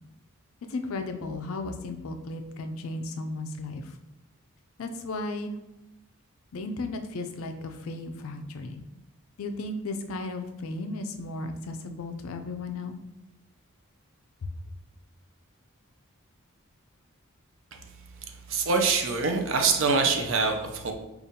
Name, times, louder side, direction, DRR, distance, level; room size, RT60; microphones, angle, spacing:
voice 1, 0.7-3.9 4.8-5.6 6.5-8.8 9.4-13.0 14.4-14.6, left 2 dB, 70° left, 7 dB, 0.4 m, -35 dB
voice 2, 18.5-20.9, right 4 dB, 60° right, 4 dB, 0.5 m, -24 dB
5.1 x 2.4 x 2.7 m, 0.90 s
head